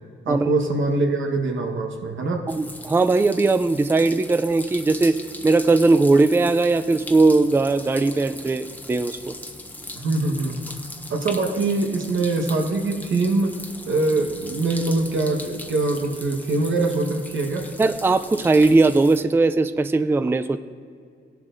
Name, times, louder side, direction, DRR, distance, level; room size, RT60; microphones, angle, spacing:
voice 1, 0.2-2.5 10.0-10.6 11.1-13.6 13.9-17.7, right 2 dB, 90° right, 2 dB, 1.3 m, -23 dB
sound 1, 2.5-19.2, left 1 dB, 10° left, 0.8 m, -39 dB
voice 2, 2.5-5.2 5.4-9.3 17.8-20.6, right 3 dB, 10° right, 11 dB, 0.3 m, -19 dB
17.5 x 11.0 x 2.6 m, 2.2 s
wide cardioid pair, 110°, 19 cm